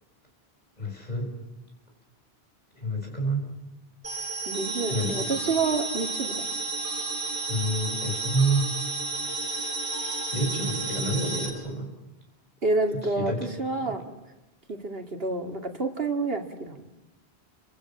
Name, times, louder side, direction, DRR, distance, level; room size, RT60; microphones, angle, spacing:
voice 1, 0.8-1.3 2.7-3.5 4.9-5.2 7.5-8.7 10.3-11.9 13.1-13.4 13.8-14.0, right 1 dB, 40° left, 1 dB, 6.8 m, -28 dB
sound 1, 4.0-11.5, right 3 dB, 30° right, 4.1 m, -32 dB
voice 2, 4.5-6.4 12.6-13.3 13.6-14.0 14.7-16.8, right 3 dB, 65° right, 4 dB, 2.8 m, -28 dB
29.5 x 25.5 x 7.5 m, 0.98 s
omnidirectional pair, 1.1 m